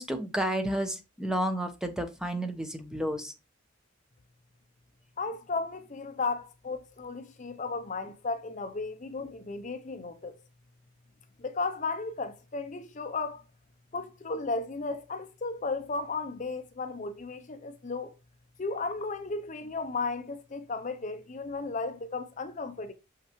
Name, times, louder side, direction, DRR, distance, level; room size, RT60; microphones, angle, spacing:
voice 1, 0.0-3.3, right 1 dB, 5° right, 0.7 m, -31 dB
voice 2, 5.2-10.4 11.4-13.4 13.9-18.1 18.6-22.9, left 3 dB, 35° left, 0.5 m, -34 dB
6.4 x 5.7 x 3.0 m
head